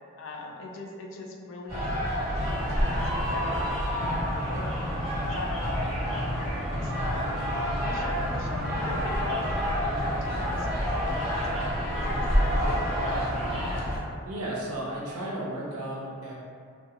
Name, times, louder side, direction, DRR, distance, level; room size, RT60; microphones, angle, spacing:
voice 1, 0.2-4.7 5.2-7.2 7.6-13.3, left 2 dB, 55° left, 1 dB, 0.3 m, -41 dB
sound 1, 1.7-14.0, equal, 20° right, 1.5 m, -28 dB
sound 2, 2.2-13.8, equal, 5° left, 0.9 m, -38 dB
voice 2, 14.2-16.3, right 1 dB, 80° right, -5 dB, 0.6 m, -34 dB
2.9 x 2.1 x 2.4 m, 2.3 s
head